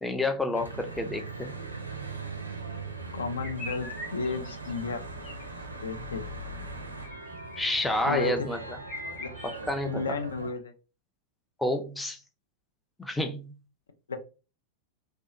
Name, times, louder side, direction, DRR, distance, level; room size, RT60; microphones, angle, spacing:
voice 1, 0.0-1.5 7.6-8.6 9.4-10.0 11.6-12.2 13.0-13.5, left 1 dB, 5° left, 0.4 m, -29 dB
Church bell / Traffic noise roadway noise, 0.5-10.5, right 3 dB, 80° right, 0.4 m, -40 dB
voice 2, 3.1-5.0 5.8-6.2 8.1-8.3 9.2-9.3 9.8-10.7 14.1-14.2, left 4 dB, 70° left, 0.4 m, -32 dB
sound 1, 3.4-4.8 5.2-5.4 7.0-7.8 8.4-8.5 8.8-9.7, left 2 dB, 30° left, 0.9 m, -42 dB
2.6 x 2.1 x 2.4 m
figure-of-eight pair, 90°, 0 cm